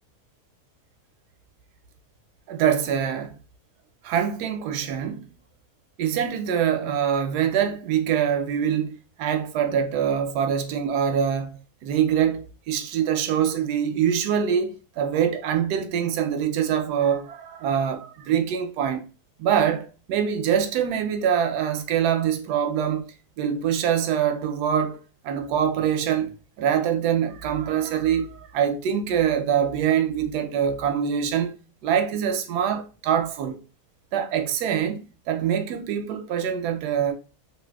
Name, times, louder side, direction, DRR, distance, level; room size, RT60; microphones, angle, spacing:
voice 1, 2.5-3.4 4.0-5.3 6.0-19.0 19.4-23.0 23.4-25.0 25.2-31.5 31.8-33.6 34.1-35.0 35.3-37.1, right 8 dB, 80° right, 1.1 m, -24 dB
3.3 x 2.7 x 2.2 m
omnidirectional pair, 1.7 m